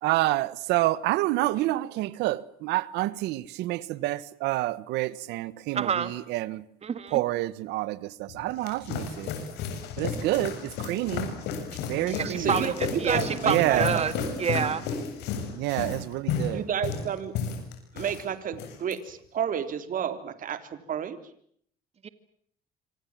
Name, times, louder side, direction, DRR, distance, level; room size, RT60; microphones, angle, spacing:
voice 1, 0.0-6.7 7.1-9.3 10.0-11.3 11.8-12.7 13.4-14.0 15.5-16.6, right 17 dB, 90° right, 1.3 m, -28 dB
voice 2, 5.7-6.1 6.8-7.2 12.1-14.1 14.4-14.8 22.0-22.1, right 7 dB, 40° right, 2.0 m, -28 dB
sound 1, 8.3-18.2 18.5-18.9, left 6 dB, 85° left, 7.7 m, -32 dB
voice 3, 12.4-14.5 16.5-17.3 17.9-21.2, right 8 dB, 55° right, 3.5 m, -31 dB
27.0 x 26.0 x 7.5 m
cardioid pair, 110°, 17 cm